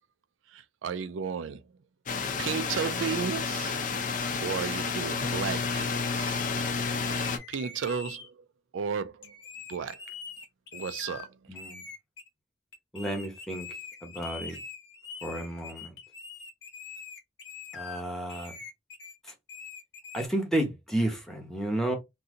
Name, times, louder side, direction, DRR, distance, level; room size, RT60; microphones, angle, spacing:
voice 1, 0.5-1.6 2.4-3.7 4.4-6.4 7.5-8.5 8.7-9.3 9.7-10.0 10.7-11.3, right 6 dB, 85° right, 0.4 m, -33 dB
sound 1, 2.1-7.4, left 5 dB, 45° left, 0.5 m, -30 dB
sound 2, 5.6-8.3 9.2-11.3 11.6-12.3 12.7-18.0 18.3-20.3, left 5 dB, 70° left, 0.9 m, -44 dB
voice 2, 11.5-11.9 12.9-13.7 14.0-14.6 15.2-16.0 17.7-18.5 19.2-19.3 20.1-22.0, right 1 dB, ahead, 0.9 m, -31 dB
2.7 x 2.6 x 3.6 m
head